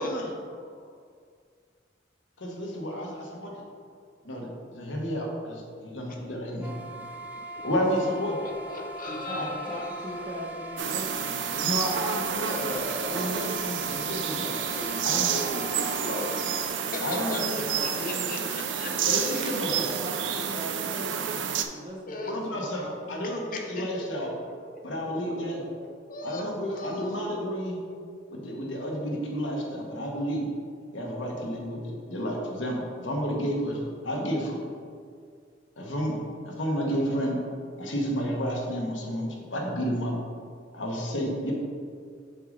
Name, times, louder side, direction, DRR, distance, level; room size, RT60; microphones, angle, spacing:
voice 1, 2.4-3.1 3.4-3.5 4.2-6.7 7.6-8.4 9.3-9.5 11.6-12.8 13.1-14.5 15.0-15.3 17.0-17.7 18.0-18.1 19.1-19.9 22.3-23.4 23.7-24.3 24.8-25.6 26.2-27.8 28.3-30.5 30.9-34.6 35.8-36.2 36.4-37.4 37.8-40.2 40.7-41.5, equal, 80° left, -1 dB, 1.2 m, -31 dB
sound 1, 6.6-16.7, right 1 dB, 10° right, 0.5 m, -40 dB
voice 2, 8.4-10.3 11.5-11.7 12.3-13.7 14.6-19.8 22.1-22.4 23.2-27.7 28.4-28.5, left 2 dB, 45° left, 1 dB, 0.9 m, -39 dB
voice 3, 9.1-11.5 17.1-18.3 19.7-23.3 25.0-25.1 25.4-25.6, equal, 25° right, -2 dB, 1.1 m, -40 dB
sound 2, 10.8-21.6, right 8 dB, 70° right, 0.4 m, -30 dB
6.6 x 3.9 x 5.2 m, 2.1 s
head